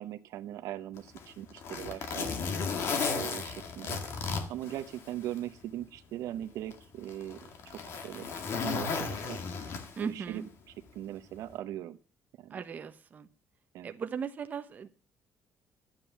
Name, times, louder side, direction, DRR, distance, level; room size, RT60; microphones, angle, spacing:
voice 1, 0.0-2.3 3.1-4.0 4.5-9.4 10.0-10.4 10.9-12.0 12.4-12.6 13.7-13.9, right 12 dB, 80° right, 9 dB, 1.0 m, -40 dB
Zipper (clothing), 1.0-5.4 5.8-5.9 6.7-10.2 11.3-11.5, left 5 dB, 50° left, 2.0 m, -35 dB
voice 2, 10.0-10.5 12.5-13.3 13.8-14.9, right 6 dB, 30° right, 7 dB, 1.0 m, -37 dB
12.5 x 9.2 x 7.1 m, 0.39 s
cardioid pair, 170°, 6 cm